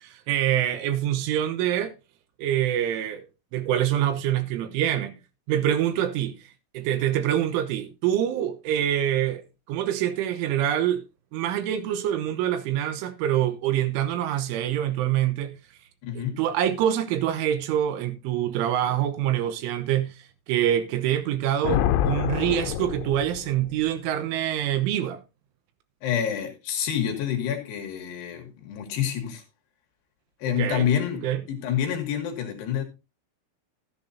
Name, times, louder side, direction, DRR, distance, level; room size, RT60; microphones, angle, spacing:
voice 1, 0.0-1.9 2.4-3.2 3.5-5.1 5.5-6.3 6.7-9.4 9.7-11.0 11.3-15.5 16.2-20.2 20.5-25.2 30.5-30.9 31.2-31.4, right 11 dB, 80° right, 3.3 m, -25 dB
voice 2, 16.0-16.4 26.0-29.4 30.4-32.8, left 9 dB, 65° left, 3.0 m, -28 dB
Thunder, 21.6-23.8, left 11 dB, 90° left, 3.4 m, -26 dB
13.5 x 10.5 x 2.7 m
omnidirectional pair, 5.9 m